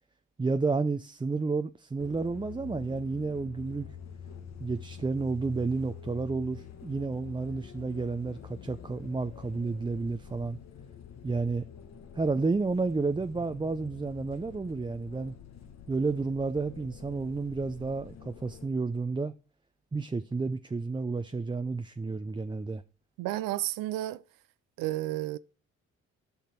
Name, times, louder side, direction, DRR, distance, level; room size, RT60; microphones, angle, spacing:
voice 1, 0.4-3.9 4.6-10.6 11.2-11.6 12.1-15.3 15.9-19.3 19.9-22.8, right 3 dB, 15° right, 0.5 m, -31 dB
sound 1, 2.0-18.7, left 8 dB, 55° left, 1.2 m, -47 dB
voice 2, 23.2-24.2 24.8-25.4, right 16 dB, 80° right, 0.6 m, -31 dB
10.5 x 5.8 x 4.4 m
supercardioid pair, 55°, 33 cm